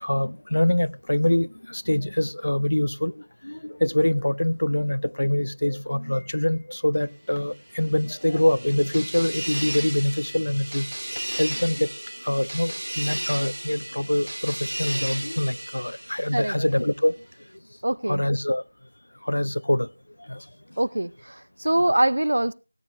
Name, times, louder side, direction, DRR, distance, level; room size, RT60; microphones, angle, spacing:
voice 1, 0.0-10.9 11.4-11.9 12.2-17.1 18.1-18.6 19.2-19.9 20.3-20.4, left 1 dB, 65° left, 0.6 m, -24 dB
sound 1, 7.7-16.8, right 1 dB, 65° right, 2.2 m, -34 dB
voice 2, 17.8-18.2 20.8-22.5, right 1 dB, 50° right, 0.5 m, -23 dB
18.5 x 8.5 x 3.0 m
figure-of-eight pair, 180°, 0 cm